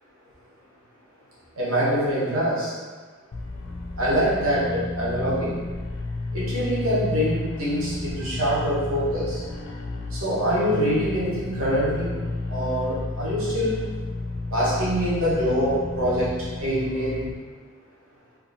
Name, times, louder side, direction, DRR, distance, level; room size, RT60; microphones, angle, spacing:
voice 1, 1.6-2.7 4.0-5.6 6.3-9.4 10.1-12.1 12.5-13.8 14.5-17.3, equal, 70° right, -8 dB, 0.9 m, -24 dB
sound 1, 3.3-17.3, left 2 dB, 60° left, 0.4 m, -32 dB
2.7 x 2.3 x 4.0 m, 1.4 s
head